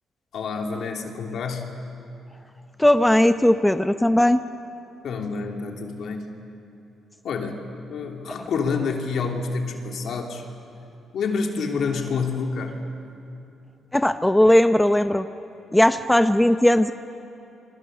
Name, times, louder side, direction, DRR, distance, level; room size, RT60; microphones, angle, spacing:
voice 1, 0.3-1.7 5.0-6.2 7.2-10.4 11.1-12.8, left 4 dB, 65° left, 2 dB, 3.0 m, -28 dB
voice 2, 2.8-4.4 13.9-15.3 15.7-16.9, left 1 dB, 5° left, 9 dB, 0.7 m, -18 dB
28.5 x 25.0 x 6.7 m, 2.8 s
cardioid pair, 90°, 0 cm